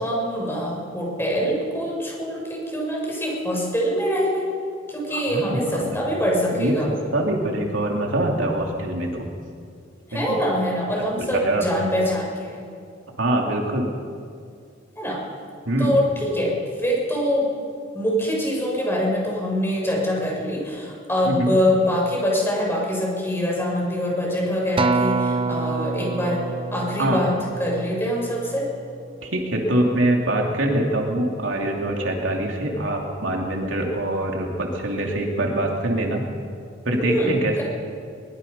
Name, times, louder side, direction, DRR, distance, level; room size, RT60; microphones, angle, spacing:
voice 1, 0.0-4.5 4.9-7.1 10.1-12.7 15.0-15.2 15.8-16.5 16.8-17.5 17.9-26.4 26.7-28.7 37.1-37.6, equal, 10° left, -3 dB, 6.8 m, -24 dB
voice 2, 5.1-6.0 6.5-9.3 10.1-10.4 11.0-11.7 13.2-13.9 15.7-16.0 21.2-21.5 27.0-27.2 29.2-36.2 36.8-37.6, right 1 dB, 80° right, 0 dB, 3.1 m, -24 dB
Acoustic guitar, 24.8-29.2 29.8-30.0, right 3 dB, 30° right, 0.5 m, -27 dB
23.0 x 21.5 x 5.6 m, 2.2 s
head